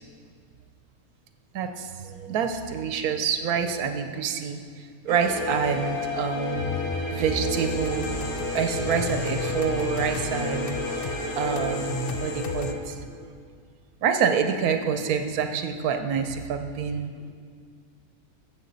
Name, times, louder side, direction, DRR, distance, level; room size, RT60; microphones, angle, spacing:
voice 1, 1.5-4.6 5.0-6.7 7.1-8.3 8.5-10.8 11.4-13.2 14.0-17.3, right 7 dB, 90° right, 7 dB, 1.2 m, -27 dB
sound 1, 5.1-12.7, left 2 dB, 80° left, 3.1 m, -30 dB
sound 2, 7.5-12.7, left 5 dB, 65° left, 0.5 m, -37 dB
14.0 x 7.8 x 4.0 m, 2.1 s
omnidirectional pair, 1.5 m